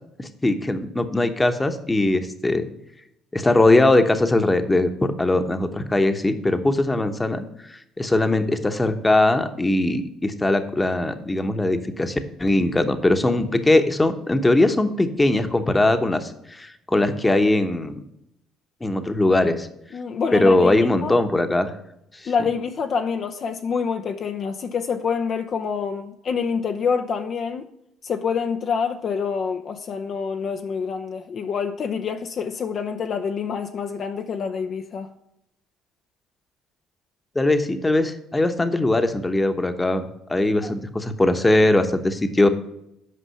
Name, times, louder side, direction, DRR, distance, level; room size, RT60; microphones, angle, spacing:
voice 1, 0.2-2.7 3.3-7.4 7.7-18.0 18.8-19.7 20.3-21.7 22.2-22.3 37.3-42.5, left 2 dB, 15° left, 1.0 m, -20 dB
voice 2, 19.9-21.2 22.3-27.7 28.0-35.1 40.6-40.8, left 6 dB, 50° left, 0.6 m, -27 dB
8.4 x 5.3 x 5.7 m
supercardioid pair, 70°, 0 cm